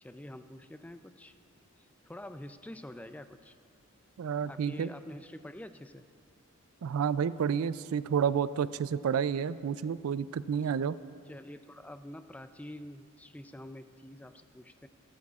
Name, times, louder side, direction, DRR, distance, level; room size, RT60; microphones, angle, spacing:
voice 1, 0.0-1.3 1.8-3.5 4.5-6.1 11.3-14.9, left 1 dB, 5° left, 10 dB, 0.3 m, -46 dB
voice 2, 4.2-4.9 6.8-11.0, right 7 dB, 85° right, 16 dB, 0.3 m, -30 dB
18.0 x 13.5 x 2.4 m, 2.4 s
head